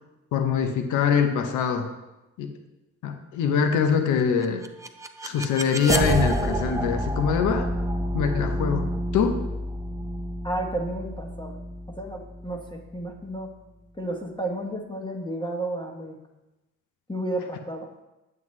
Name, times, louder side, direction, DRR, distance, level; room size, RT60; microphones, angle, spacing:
voice 1, 0.3-1.9 2.4-2.5 3.0-4.6 5.2-7.7 8.1-8.8 9.1-9.4, left 6 dB, 90° left, 6 dB, 0.8 m, -23 dB
sound 1, 4.4-13.4, right 1 dB, 10° right, 0.5 m, -29 dB
voice 2, 10.4-11.5 12.0-13.5 14.0-16.2 17.1-18.0, right 1 dB, 15° left, 2 dB, 1.1 m, -32 dB
7.7 x 7.3 x 3.2 m, 0.99 s
cardioid pair, 90°, 30 cm